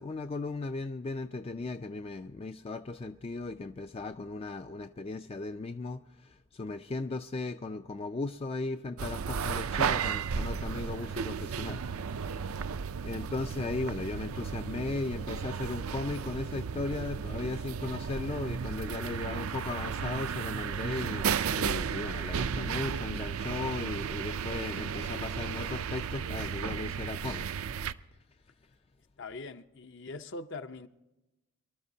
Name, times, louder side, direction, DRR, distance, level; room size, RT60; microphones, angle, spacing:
voice 1, 0.0-11.8 13.0-27.4, left 3 dB, 25° left, 0.3 m, -37 dB
sound 1, 9.0-27.9, right 6 dB, 80° right, 0.5 m, -34 dB
voice 2, 29.2-30.9, left 3 dB, 55° left, 0.7 m, -42 dB
24.5 x 12.5 x 2.8 m
head